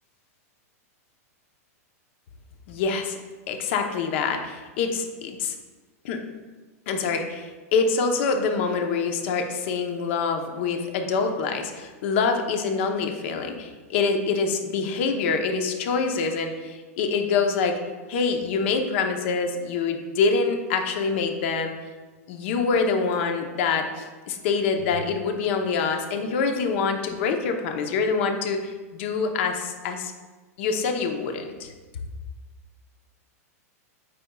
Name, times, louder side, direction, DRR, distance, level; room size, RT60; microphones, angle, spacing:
voice 1, 2.7-3.2 3.5-5.5 6.0-6.2 6.9-17.8 18.1-21.7 22.3-30.1 30.6-31.7, left 4 dB, 50° left, 5 dB, 0.9 m, -25 dB
8.6 x 5.4 x 2.3 m, 1.3 s
supercardioid pair, 155°, 8 cm